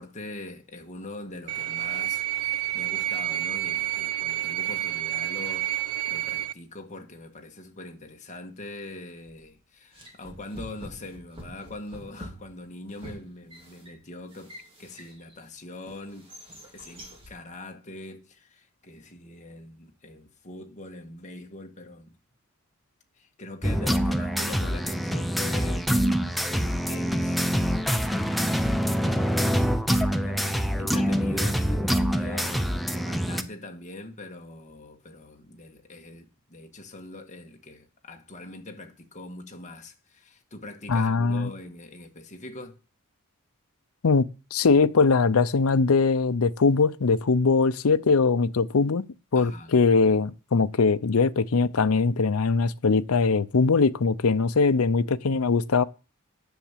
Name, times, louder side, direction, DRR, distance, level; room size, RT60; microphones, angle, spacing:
voice 1, 0.0-16.4 16.7-22.1 23.1-42.8 49.3-49.7, left 2 dB, 35° left, 1.7 m, -42 dB
sound 1, 1.5-6.5, right 16 dB, 80° right, 0.6 m, -29 dB
sound 2, 9.3-9.5 9.9-15.4 15.9-17.4, equal, 25° right, 3.3 m, -46 dB
sound 3, 23.6-33.4, equal, ahead, 0.7 m, -25 dB
voice 2, 40.9-41.5 44.0-44.2 44.5-49.0 49.3-55.8, left 4 dB, 80° left, 0.6 m, -21 dB
10.5 x 7.2 x 7.4 m
head